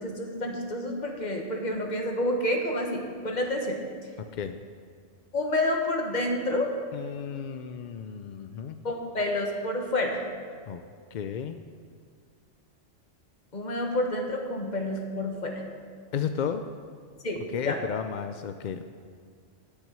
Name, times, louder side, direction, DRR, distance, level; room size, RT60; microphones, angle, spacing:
voice 1, 0.0-3.8 5.3-6.7 8.8-10.2 13.5-15.6 17.2-17.8, left 1 dB, 40° left, 2 dB, 1.4 m, -29 dB
voice 2, 6.9-8.8 10.7-10.8 11.1-11.6 16.1-16.6 17.5-18.9, left 7 dB, 60° left, 8 dB, 0.5 m, -33 dB
10.0 x 6.2 x 8.9 m, 2.1 s
omnidirectional pair, 1.2 m